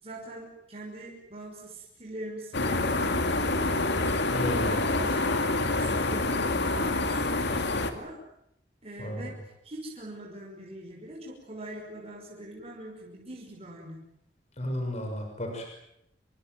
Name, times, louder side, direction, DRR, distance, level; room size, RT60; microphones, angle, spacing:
voice 1, 0.0-4.2 4.6-5.4 5.8-8.2 8.8-14.0, right 1 dB, 35° right, -1 dB, 5.8 m, -43 dB
sound 1, 2.5-7.9, left 2 dB, 65° left, 2.5 m, -27 dB
voice 2, 4.3-4.8 9.0-9.3 14.6-15.7, left 1 dB, 35° left, 3 dB, 6.2 m, -33 dB
28.5 x 23.5 x 7.8 m, 0.79 s
head